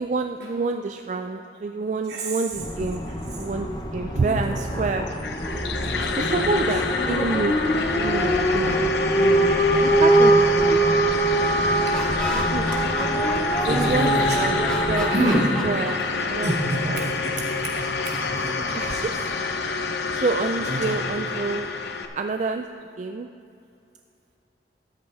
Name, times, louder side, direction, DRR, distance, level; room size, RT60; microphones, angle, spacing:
voice 1, 0.0-3.0 3.3-5.1 6.1-7.5 7.9-8.8 9.2-10.8 12.3-12.7 13.7-15.4 15.6-16.6 16.9-17.1 18.7-19.1 19.7-21.7 22.1-22.6 23.0-23.3, right 3 dB, 40° right, 5 dB, 0.3 m, -28 dB
sound 1, 2.5-15.2, right 1 dB, 25° left, 0.8 m, -23 dB
voice 2, 4.1-4.9 5.8-6.5 13.7-14.4 15.1-15.5 16.4-19.1 20.6-20.9, right 1 dB, 70° right, -4 dB, 2.4 m, -28 dB
sound 2, 5.1-22.1, left 4 dB, 70° left, 0.7 m, -28 dB
Laughter, 11.6-14.1 14.6-16.6, left 1 dB, 5° left, 1.1 m, -34 dB
13.0 x 9.5 x 3.5 m, 2.6 s
head